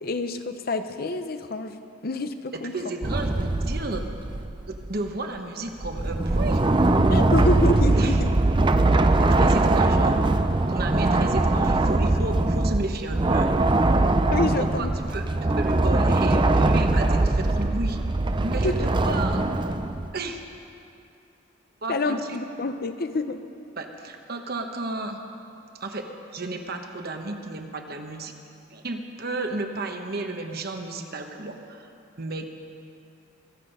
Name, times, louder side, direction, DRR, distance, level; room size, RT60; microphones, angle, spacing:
voice 1, 0.0-2.8 7.1-8.3 14.3-14.9 18.6-18.7 21.9-23.4, left 2 dB, 50° left, 9 dB, 0.7 m, -27 dB
voice 2, 2.5-4.1 4.7-6.6 8.0-8.2 9.2-13.5 14.6-18.0 18.4-19.5 20.1-20.4 21.8-22.4 23.8-25.2 25.8-28.3 28.7-31.9 32.2-32.5, right 2 dB, 50° right, 5 dB, 1.1 m, -33 dB
sound 1, 3.0-5.0 5.8-20.1, right 2 dB, 25° right, 0.5 m, -21 dB
24.0 x 8.5 x 5.5 m, 2.6 s
head